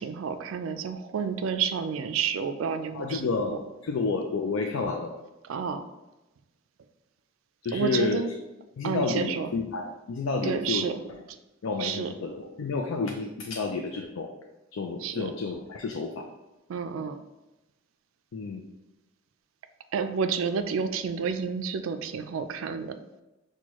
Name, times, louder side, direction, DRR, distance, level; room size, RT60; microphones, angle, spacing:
voice 1, 0.0-3.6 5.5-5.8 7.7-8.3 8.8-9.5 10.4-11.0 11.8-12.1 15.0-15.3 16.7-17.2 19.9-22.9, right 6 dB, 80° right, 9 dB, 0.3 m, -30 dB
voice 2, 2.9-3.6 3.8-5.1 7.6-8.2 8.8-10.9 11.6-14.3 14.7-16.3 18.3-18.6, left 4 dB, 85° left, 2 dB, 0.4 m, -30 dB
6.1 x 2.2 x 2.9 m, 1.0 s
head